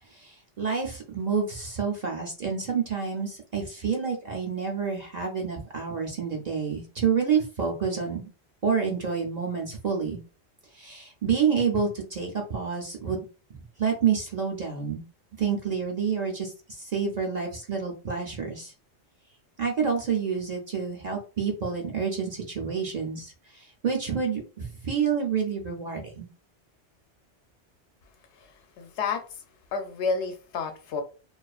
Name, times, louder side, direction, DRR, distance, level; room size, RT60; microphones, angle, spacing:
voice 1, 0.1-8.3 8.6-10.2 10.7-13.2 13.5-15.0 15.4-18.7 19.6-26.3, right 6 dB, 50° right, 0.5 m, -28 dB
voice 2, 28.8-29.2 29.7-31.0, left 5 dB, 80° left, 0.9 m, -29 dB
2.4 x 2.4 x 2.3 m
omnidirectional pair, 1.1 m